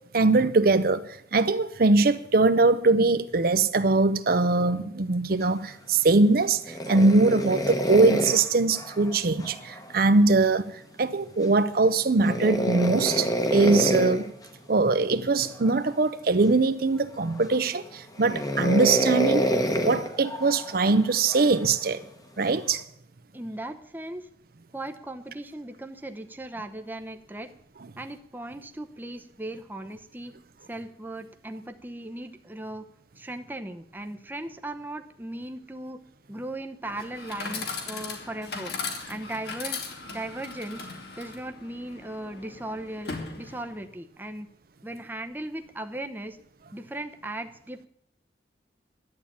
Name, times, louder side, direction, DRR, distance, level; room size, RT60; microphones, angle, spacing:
voice 1, 0.1-14.3 14.7-19.4 19.7-22.0 22.4-22.8, right 3 dB, 50° right, 0.6 m, -22 dB
sound 1, 6.6-9.9 12.2-14.3 15.4-15.9 16.4-16.5 17.2-17.7 18.2-21.6 22.5-22.8, equal, 20° left, 1.1 m, -27 dB
voice 2, 23.3-24.3 24.7-27.5 28.0-30.3 30.7-32.9 33.2-36.0 36.3-38.7 39.1-40.9 41.2-44.5 44.8-46.4 46.7-47.9, right 1 dB, 10° right, 0.8 m, -37 dB
Chatter / Coin (dropping), 36.8-43.9, left 4 dB, 60° left, 2.4 m, -38 dB
11.5 x 8.7 x 8.7 m
head